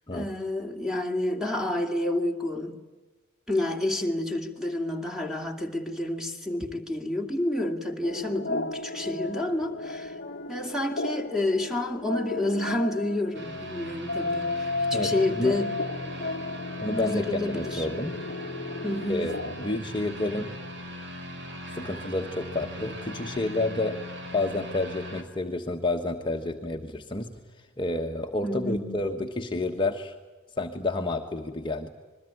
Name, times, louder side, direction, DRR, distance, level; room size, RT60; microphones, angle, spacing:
voice 1, 0.1-2.8 3.5-10.2 10.5-15.8 16.8-17.9 18.8-19.4 28.4-28.9, left 1 dB, ahead, 2.6 m, -29 dB
sound 1, 8.0-19.8, left 3 dB, 45° left, 1.1 m, -34 dB
sound 2, 13.3-25.2, equal, 55° right, 3.9 m, -39 dB
voice 2, 14.9-15.6 16.8-18.2 19.1-20.5 21.7-24.0 24.3-27.3 27.6-30.1 30.6-31.9, left 2 dB, 25° left, 1.3 m, -30 dB
27.5 x 22.0 x 9.4 m
head